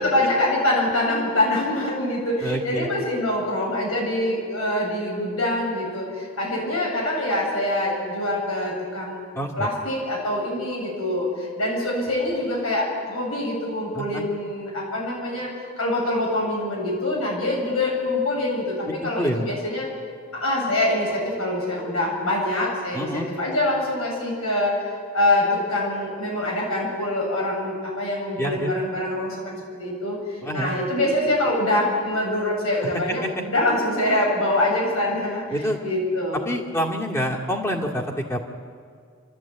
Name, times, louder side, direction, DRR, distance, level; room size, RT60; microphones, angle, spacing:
voice 1, 0.0-9.2 9.6-15.5 15.8-19.9 20.3-24.8 25.1-35.4 35.8-36.4, left 1 dB, 85° left, -2 dB, 7.8 m, -24 dB
voice 2, 2.4-2.9 9.3-9.7 13.9-14.2 19.0-19.5 22.9-23.3 28.4-28.7 30.4-30.7 32.9-33.4 35.5-35.8 36.4-38.4, equal, 10° left, -1 dB, 2.2 m, -27 dB
29.0 x 13.5 x 8.9 m, 2.1 s
head